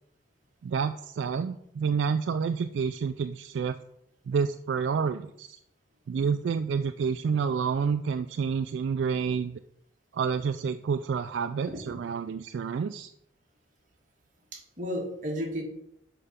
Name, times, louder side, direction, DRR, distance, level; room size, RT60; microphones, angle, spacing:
voice 1, 0.6-3.8 4.3-5.6 6.1-9.6 10.1-13.1, right 6 dB, 75° right, 9 dB, 0.3 m, -29 dB
voice 2, 14.5-15.6, equal, 40° right, -1 dB, 1.7 m, -33 dB
6.8 x 5.4 x 5.1 m, 0.75 s
head